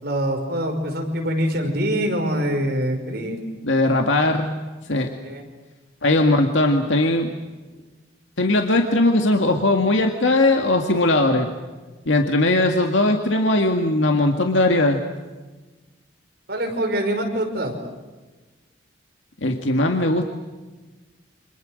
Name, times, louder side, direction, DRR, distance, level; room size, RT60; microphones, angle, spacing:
voice 1, 0.0-3.4 5.2-5.4 16.5-17.7, equal, 55° right, 3 dB, 5.2 m, -24 dB
voice 2, 3.6-4.6 4.9-5.1 6.0-7.3 8.4-11.5 12.1-15.0 19.4-20.2, left 2 dB, 80° left, 4 dB, 2.0 m, -19 dB
29.0 x 26.0 x 6.5 m, 1.3 s
head